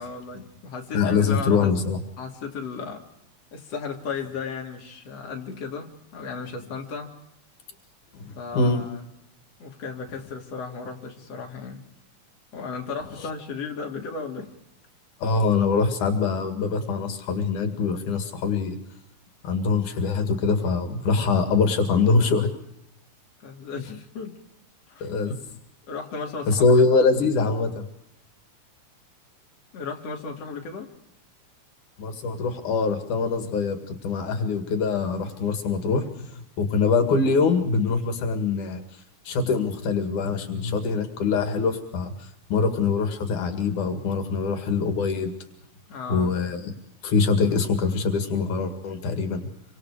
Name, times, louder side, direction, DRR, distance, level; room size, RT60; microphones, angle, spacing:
voice 1, 0.0-1.7 2.2-3.0 3.5-7.1 8.4-9.0 9.6-11.8 12.5-14.5 23.4-24.4 24.9-25.4 25.9-26.7 29.7-30.9 45.9-46.3, left 5 dB, 55° left, 0 dB, 4.0 m, -35 dB
voice 2, 0.9-2.0 8.1-8.8 13.2-13.3 15.2-18.8 19.4-22.5 25.0-25.4 26.5-27.8 32.0-45.3 46.1-46.7 47.0-49.4, left 4 dB, 85° left, 6 dB, 3.7 m, -24 dB
29.0 x 25.0 x 5.0 m, 0.79 s
omnidirectional pair, 3.4 m